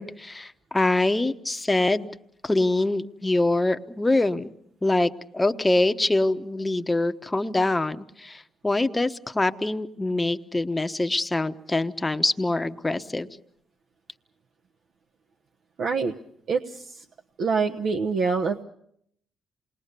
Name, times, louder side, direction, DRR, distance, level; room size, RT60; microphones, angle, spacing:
voice 1, 0.0-2.1 2.4-4.5 4.8-13.3, left 2 dB, 15° left, 9 dB, 1.1 m, -24 dB
voice 2, 15.8-16.1 16.5-17.0 17.4-18.6, right 5 dB, 60° right, 3 dB, 1.1 m, -25 dB
28.0 x 20.5 x 6.8 m, 0.71 s
cardioid pair, 90°, 0 cm